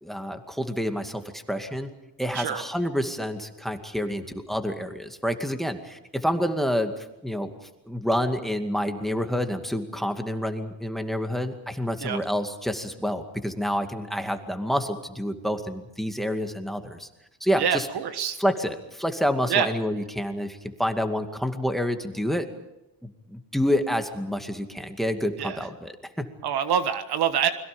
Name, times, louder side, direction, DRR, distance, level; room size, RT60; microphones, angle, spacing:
voice 1, 0.0-1.9 2.2-7.5 7.9-17.1 17.4-17.9 18.4-22.5 23.0-26.3, equal, ahead, 6 dB, 2.3 m, -28 dB
voice 2, 17.6-18.4 19.5-19.7 25.4-25.6 26.4-27.5, right 8 dB, 65° right, 10 dB, 1.6 m, -25 dB
29.0 x 22.0 x 5.3 m, 0.95 s
cardioid pair, 100°, 42 cm